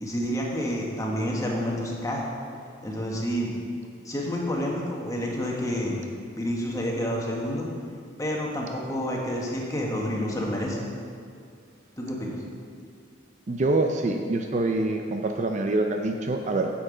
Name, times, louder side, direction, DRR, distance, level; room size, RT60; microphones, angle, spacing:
voice 1, 0.0-2.2 2.8-3.5 4.0-6.0 6.3-7.7 8.2-10.8 12.0-12.4, equal, 15° left, -2 dB, 1.3 m, -29 dB
voice 2, 13.5-16.7, right 2 dB, 35° right, 4 dB, 0.5 m, -25 dB
8.5 x 7.7 x 5.1 m, 2.3 s
head